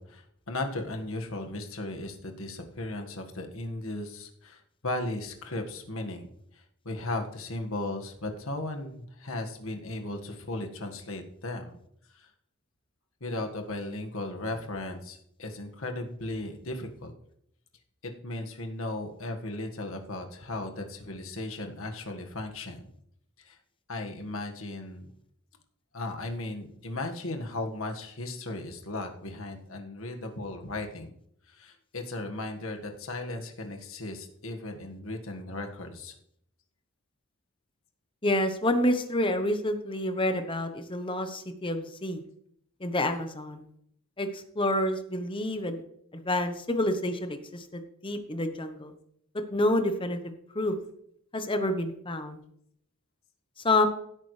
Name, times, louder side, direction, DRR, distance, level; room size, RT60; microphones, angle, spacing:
voice 1, 0.0-11.8 12.1-12.3 13.2-17.1 18.0-22.8 23.4-23.6 23.9-25.1 25.9-31.1 31.5-36.1, left 2 dB, 65° left, 4 dB, 1.7 m, -36 dB
voice 2, 38.2-42.2 42.8-43.6 44.2-45.8 46.1-48.9 49.5-50.7 51.3-52.4 53.6-53.9, left 1 dB, 25° left, 7 dB, 0.9 m, -28 dB
16.0 x 8.6 x 3.3 m, 0.71 s
head